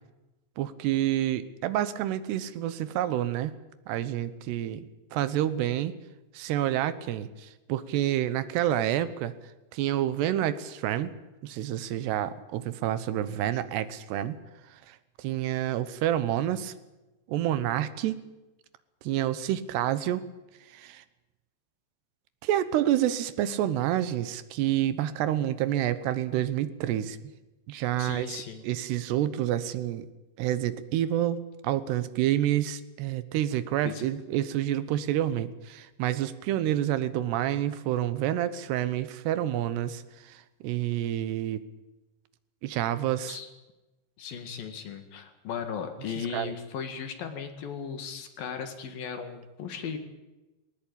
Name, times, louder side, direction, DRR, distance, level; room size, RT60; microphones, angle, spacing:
voice 1, 0.6-3.5 3.9-6.0 6.3-9.3 9.7-11.1 11.4-14.4 14.9-16.7 17.3-18.2 19.0-20.3 20.7-21.0 22.4-27.3 27.7-30.1 30.4-41.6 42.6-43.4 46.3-46.5, right 12 dB, 75° right, 14 dB, 2.8 m, -28 dB
voice 2, 28.0-28.6 33.8-34.1 43.3-43.5 44.2-50.0, left 7 dB, 55° left, 7 dB, 3.2 m, -37 dB
19.5 x 19.5 x 8.7 m, 1.1 s
omnidirectional pair, 5.5 m